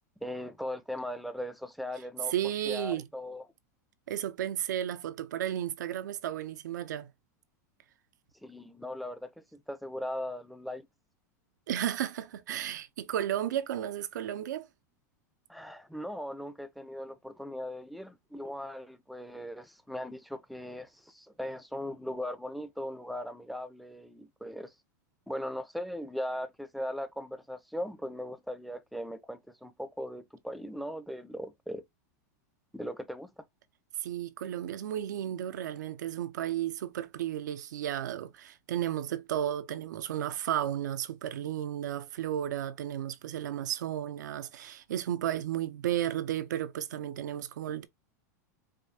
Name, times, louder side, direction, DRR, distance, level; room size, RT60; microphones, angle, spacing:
voice 1, 0.2-2.3 2.6-3.5 8.4-10.8 15.5-24.7 25.3-31.8 32.7-33.4, left 1 dB, ahead, 0.6 m, -39 dB
voice 2, 2.3-3.0 4.1-7.1 11.7-14.7 34.0-47.9, right 11 dB, 85° right, 0.6 m, -33 dB
5.0 x 2.3 x 2.7 m
hypercardioid pair, 120°, 9 cm